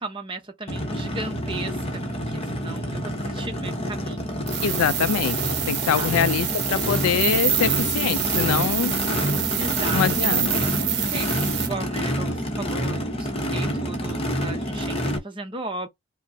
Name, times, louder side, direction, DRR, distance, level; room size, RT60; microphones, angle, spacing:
voice 1, 0.0-2.0 2.3-4.4 5.9-6.2 9.6-10.3 11.1-11.4 11.6-15.9, right 2 dB, 25° right, 0.7 m, -36 dB
Race car auto racing / Idling / Accelerating revving vroom, 0.7-15.2, equal, 30° left, 0.8 m, -28 dB
sound 1, 4.5-11.7, right 11 dB, 50° right, 0.8 m, -26 dB
voice 2, 4.6-5.4 5.7-9.0 9.9-10.5, left 8 dB, 90° left, 0.3 m, -24 dB
5.1 x 2.1 x 2.6 m
head